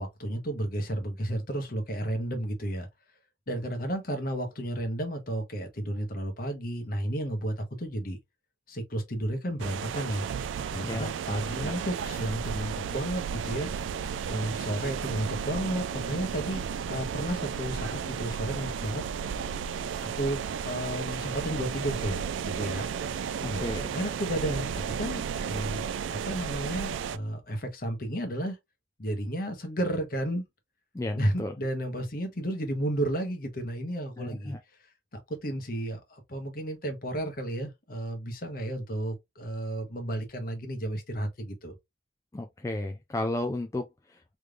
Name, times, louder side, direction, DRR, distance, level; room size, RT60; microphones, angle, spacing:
voice 1, 0.0-2.9 3.5-8.2 8.7-10.2 10.7-13.7 14.3-16.6 16.9-19.0 20.2-22.9 23.5-28.6 29.0-30.4 31.2-34.6 35.1-41.8, right 1 dB, 50° left, 1.1 m, -32 dB
sound 1, 9.6-27.2, right 7 dB, 80° right, 0.3 m, -33 dB
voice 2, 10.8-11.7 23.4-23.9 30.9-31.6 34.2-34.6 42.3-44.4, left 2 dB, 15° left, 0.3 m, -34 dB
3.3 x 3.2 x 2.4 m
head